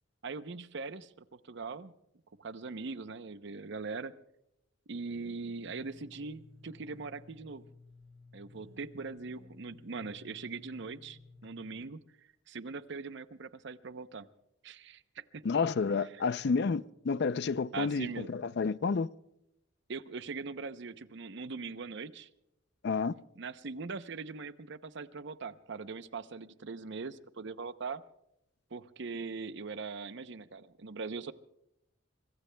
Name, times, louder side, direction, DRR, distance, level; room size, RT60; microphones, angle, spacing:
voice 1, 0.2-1.9 2.4-4.1 4.9-7.6 8.3-12.0 12.5-14.3 14.6-15.4 17.7-18.3 19.9-22.3 23.4-28.0 28.7-31.3, right 4 dB, 65° right, 0.7 m, -41 dB
sound 1, 5.0-11.8, left 3 dB, 85° right, 6.3 m, -56 dB
voice 2, 15.4-19.1 22.8-23.1, left 5 dB, 60° left, 0.5 m, -30 dB
25.0 x 23.5 x 2.2 m
head